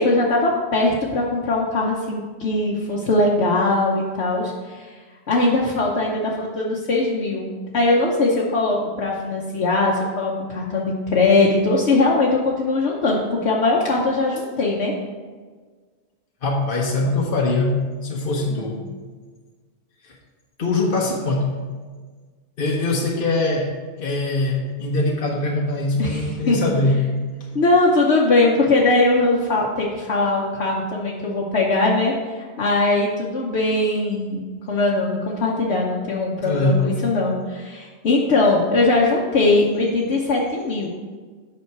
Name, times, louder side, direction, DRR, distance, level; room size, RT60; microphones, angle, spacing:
voice 1, 0.0-4.9 5.3-14.9 18.5-18.7 26.0-26.6 27.5-40.9, left 2 dB, 70° left, -3 dB, 1.2 m, -20 dB
voice 2, 16.4-18.8 20.0-20.2 20.6-21.5 22.6-27.1 27.4-27.5 34.6-34.8 36.4-36.9, left 2 dB, 55° left, -1 dB, 1.0 m, -22 dB
8.4 x 5.7 x 4.6 m, 1.5 s
omnidirectional pair, 1.2 m